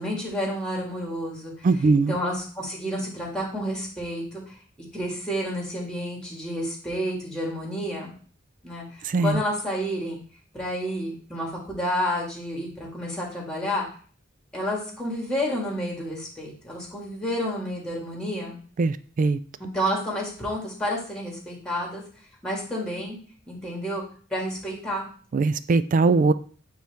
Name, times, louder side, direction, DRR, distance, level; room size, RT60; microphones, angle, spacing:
voice 1, 0.0-1.7 2.1-4.6 4.9-8.1 8.6-10.2 10.5-13.8 14.5-18.6 19.7-22.0 22.4-23.2 23.5-24.0 24.3-25.1, equal, 5° left, 1.9 m, -30 dB
voice 2, 1.6-2.2 9.0-9.4 18.8-19.4 25.3-26.3, right 3 dB, 40° right, 0.3 m, -21 dB
8.7 x 3.1 x 3.5 m
head